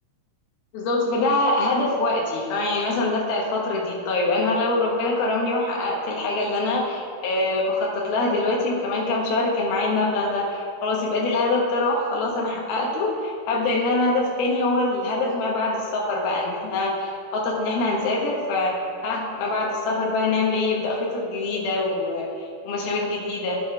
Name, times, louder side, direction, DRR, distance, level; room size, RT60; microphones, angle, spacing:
voice 1, 0.7-18.7 19.0-23.6, left 2 dB, 70° left, -2 dB, 2.4 m, -24 dB
13.0 x 9.3 x 3.4 m, 2.3 s
omnidirectional pair, 6.0 m